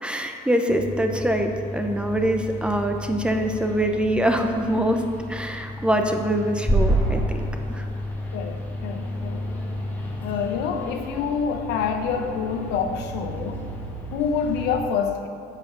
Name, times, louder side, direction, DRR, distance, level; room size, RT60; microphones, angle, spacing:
voice 1, 0.0-5.0 5.3-7.8, right 1 dB, 5° right, 4 dB, 0.7 m, -24 dB
sound 1, 0.7-14.8, equal, 10° left, 1.5 m, -30 dB
voice 2, 8.3-9.5 10.2-13.7 14.1-15.3, left 6 dB, 90° left, 6 dB, 0.8 m, -27 dB
7.6 x 4.9 x 6.7 m, 2.3 s
cardioid pair, 110°, 17 cm